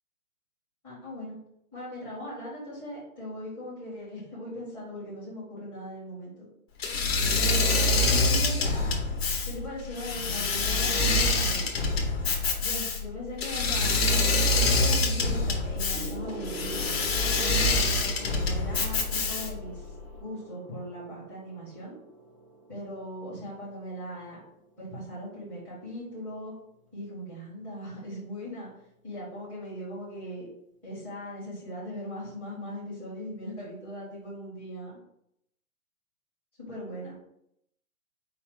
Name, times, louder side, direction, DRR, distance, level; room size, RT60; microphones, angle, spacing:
voice 1, 0.8-1.4 1.7-6.5 7.3-9.0 9.4-11.7 12.6-16.9 17.4-21.9 22.7-24.4 24.8-26.5 26.9-28.7 29.0-30.5 30.8-35.0 36.6-37.1, equal, 5° left, -11 dB, 0.7 m, -39 dB
Engine / Mechanisms, 6.8-19.7, left 3 dB, 45° left, 0.8 m, -25 dB
Gong, 15.9-25.7 26.6-26.9, right 3 dB, 25° right, 0.3 m, -45 dB
4.8 x 2.0 x 4.7 m, 0.75 s
hypercardioid pair, 170°, 43 cm